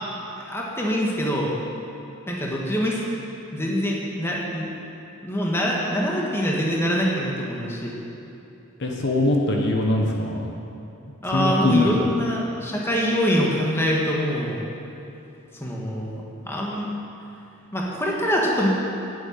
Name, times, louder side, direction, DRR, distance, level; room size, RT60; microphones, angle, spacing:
voice 1, 0.4-1.5 2.3-3.0 3.5-4.7 5.2-7.9 11.2-14.6 15.5-16.9 17.7-18.7, equal, 10° left, -3 dB, 1.4 m, -24 dB
voice 2, 8.8-10.5 11.3-12.0, left 2 dB, 55° left, 1 dB, 1.1 m, -22 dB
8.6 x 7.9 x 8.9 m, 2.8 s
head